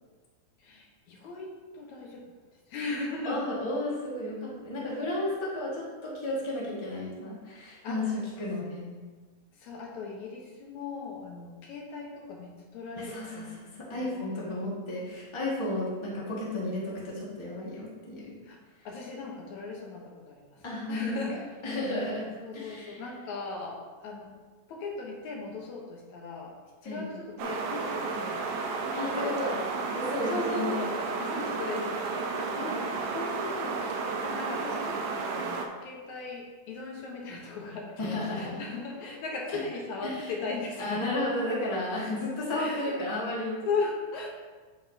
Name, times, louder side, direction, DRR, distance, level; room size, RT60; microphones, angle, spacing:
voice 1, 0.6-2.3 2.7-3.4 4.1-4.3 7.8-8.0 9.5-13.7 13.9-14.6 18.4-18.6 18.9-20.6 20.9-21.5 22.4-24.3 24.7-26.6 26.8-28.5 29.2-29.4 30.3-32.2 34.2-41.6 42.5-43.0 43.7-44.3, left 3 dB, 75° left, -1 dB, 2.5 m, -37 dB
voice 2, 2.9-9.0 13.0-18.4 20.6-21.2 21.6-23.0 26.8-27.1 28.9-29.6 29.9-31.1 32.5-33.8 38.0-38.7 39.5-39.6 40.0-40.5 40.8-43.6, left 1 dB, 15° left, -6 dB, 1.3 m, -33 dB
sound 1, 27.4-35.7, right 4 dB, 80° right, 2.2 m, -32 dB
8.3 x 7.8 x 2.8 m, 1.4 s
omnidirectional pair, 3.4 m